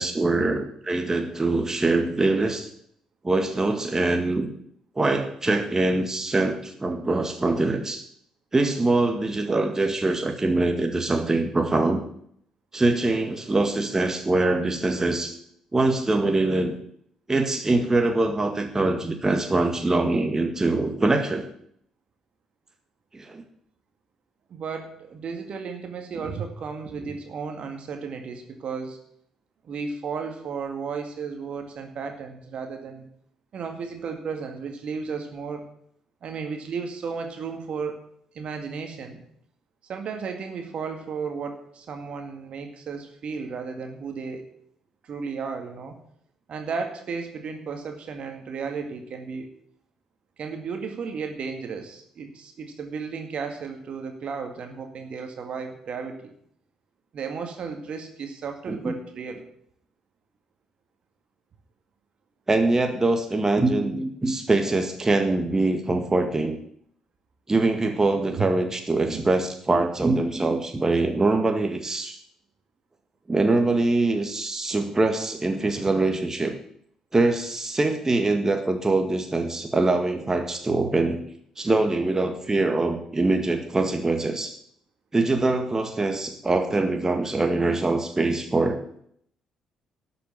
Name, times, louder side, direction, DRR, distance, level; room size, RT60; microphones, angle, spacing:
voice 1, 0.0-2.7 3.2-4.5 5.0-8.0 8.5-12.0 12.7-15.4 15.7-16.8 17.3-21.5 23.1-23.4 58.7-58.9 62.5-66.6 67.5-72.2 73.3-76.6 77.1-81.2 81.6-84.6 85.1-88.8, right 2 dB, 20° right, 5 dB, 1.9 m, -23 dB
voice 2, 24.5-29.0 29.6-33.1 33.5-35.7 36.2-38.1 38.3-39.2 39.8-44.5 45.0-46.0 46.5-49.5 50.4-56.3 57.1-59.4 68.3-68.5 69.0-69.2, right 5 dB, 50° right, 5 dB, 2.1 m, -34 dB
12.5 x 7.0 x 8.6 m, 0.67 s
figure-of-eight pair, 45°, 2 cm